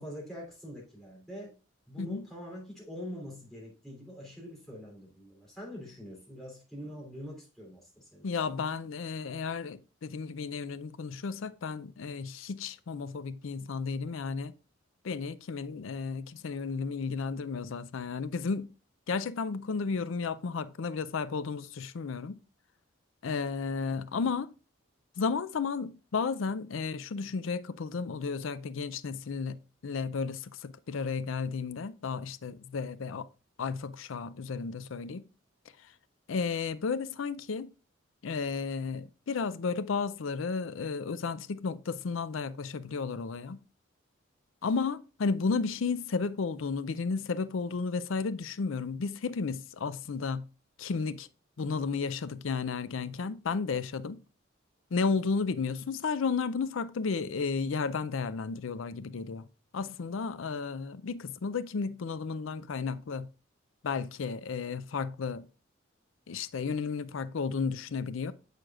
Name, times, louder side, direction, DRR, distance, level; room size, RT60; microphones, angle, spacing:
voice 1, 0.0-1.5 1.9-8.3, equal, ahead, 3.2 m, -44 dB
voice 2, 8.2-14.5 15.0-18.7 19.1-22.4 23.2-24.5 25.2-33.3 33.6-35.3 36.3-37.7 38.2-43.6 44.6-50.4 50.8-51.3 51.6-54.2 54.9-59.5 59.7-63.3 63.8-65.5 66.3-68.3, left 5 dB, 75° left, 0.5 m, -33 dB
7.7 x 6.6 x 2.4 m
head